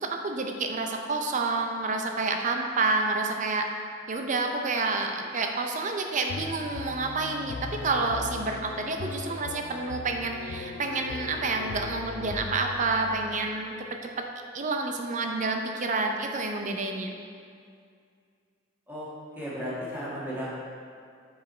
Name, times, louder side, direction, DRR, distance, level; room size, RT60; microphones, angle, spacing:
voice 1, 0.0-3.7 4.1-13.7 14.2-14.3 14.5-17.1, right 3 dB, 40° right, 3 dB, 0.5 m, -29 dB
sound 1, 6.3-13.5, left 4 dB, 65° left, 0.4 m, -39 dB
voice 2, 19.4-20.5, equal, 10° right, -8 dB, 1.5 m, -34 dB
5.4 x 4.9 x 4.3 m, 2.2 s
head